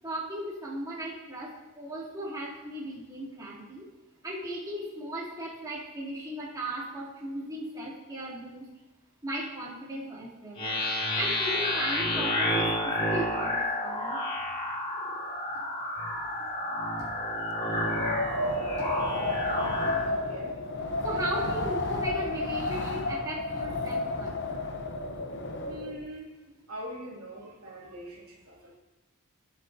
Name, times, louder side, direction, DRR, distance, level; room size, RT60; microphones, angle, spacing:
voice 1, 0.0-3.9 4.2-8.7 9.2-10.6 11.2-14.2 16.4-16.5 17.0-17.1 17.6-17.9 18.8-18.9 19.3-19.4 19.8-20.0 20.5-24.4 27.4-27.8, right 1 dB, 15° right, -9 dB, 3.2 m, -37 dB
sound 1, 10.6-20.0, left 1 dB, 30° left, 3.3 m, -30 dB
Wind, 17.6-26.1, left 2 dB, 55° left, 1.0 m, -32 dB
voice 2, 19.4-19.7 20.0-20.6 25.6-26.4 26.7-28.8, equal, 75° right, -5 dB, 3.1 m, -43 dB
18.5 x 7.6 x 2.9 m, 1.1 s
head